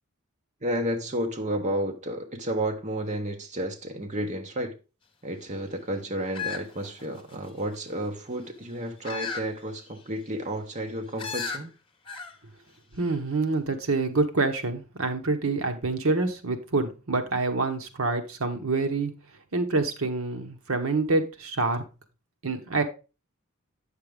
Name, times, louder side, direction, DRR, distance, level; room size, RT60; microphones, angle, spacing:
voice 1, 0.6-4.8 5.2-11.7, right 1 dB, 35° right, 1.0 m, -31 dB
sound 1, 6.3-7.5 9.0-9.5 9.9-10.0 11.2-11.6 12.1-12.4 12.7-12.8, left 5 dB, 25° left, 1.1 m, -34 dB
voice 2, 12.9-19.1 19.5-21.8 22.4-22.8, right 3 dB, 75° right, 1.0 m, -26 dB
8.8 x 6.6 x 3.5 m
head